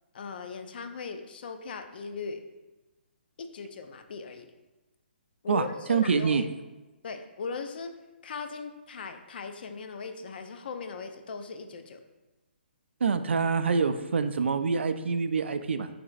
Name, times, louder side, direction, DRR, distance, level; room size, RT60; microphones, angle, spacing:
voice 1, 0.1-2.4 3.4-4.5 5.4-6.4 7.0-7.9 8.2-12.0, left 4 dB, 55° left, 7 dB, 0.4 m, -38 dB
voice 2, 5.5-6.5 13.0-15.9, right 5 dB, 80° right, 10 dB, 0.3 m, -26 dB
3.3 x 2.9 x 4.0 m, 1.1 s
hypercardioid pair, 155°, 6 cm